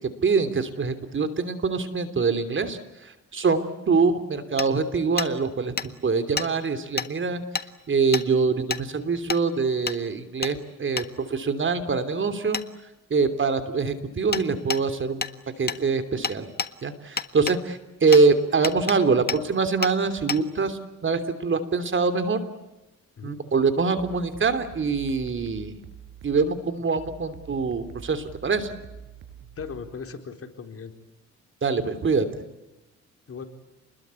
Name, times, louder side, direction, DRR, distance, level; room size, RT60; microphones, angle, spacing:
voice 1, 0.2-7.4 7.9-12.6 13.1-15.3 15.6-16.5 16.8-22.4 23.2-25.8 26.2-28.7 31.6-32.3, right 4 dB, 40° right, 10 dB, 3.2 m, -24 dB
Hammer, 4.6-4.7 5.2-5.3 5.8-5.9 6.4-6.5 7.0-7.1 7.5-7.7 8.1-8.3 8.7-8.8 9.3-9.4 9.9-10.0 10.4-10.5 11.0-11.1 12.5-12.7 14.3-14.4 14.7-14.8 15.2-15.3 15.7-15.8 16.2-16.7 17.2-17.6 18.1-18.2 18.6-19.0 19.3-19.4 19.8-19.9 20.3-20.4, left 5 dB, 30° left, 1.5 m, -28 dB
sound 1, 24.0-30.0, right 8 dB, 80° right, 5.0 m, -46 dB
voice 2, 29.6-30.9 33.3-33.4, left 5 dB, 50° left, 5 dB, 4.3 m, -37 dB
28.5 x 21.5 x 8.4 m, 0.99 s
cardioid pair, 90°, 30 cm